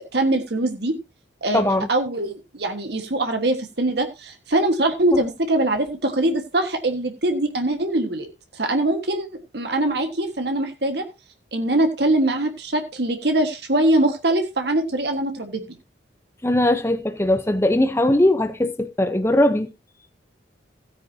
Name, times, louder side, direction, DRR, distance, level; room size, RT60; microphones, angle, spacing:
voice 1, 0.1-0.9 1.4-1.6 1.9-8.3 8.5-9.3 9.5-11.0 11.5-15.6, right 1 dB, 65° right, 1.6 m, -22 dB
voice 2, 1.5-1.9 16.4-19.7, left 1 dB, 15° left, 0.7 m, -20 dB
16.5 x 9.2 x 2.8 m
head